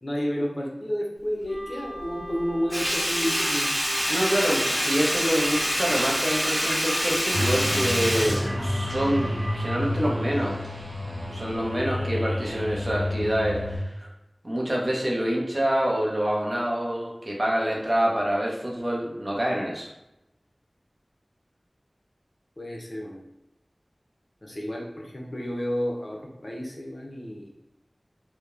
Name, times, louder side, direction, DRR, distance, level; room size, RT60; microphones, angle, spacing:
voice 1, 0.0-3.7 22.6-23.2 24.4-27.5, equal, 50° left, -1 dB, 0.5 m, -31 dB
sound 1, 1.5-9.8, equal, 10° right, 0.7 m, -39 dB
Sink (filling or washing), 2.7-9.2 9.6-9.7, equal, 10° left, 0.9 m, -26 dB
voice 2, 4.1-10.6 11.3-14.1 14.4-19.9, equal, 45° right, -3 dB, 0.6 m, -26 dB
sound 2, 7.3-13.8, left 1 dB, 70° right, 1.0 m, -30 dB
2.9 x 2.0 x 2.3 m, 0.90 s
wide cardioid pair, 45°, 0 cm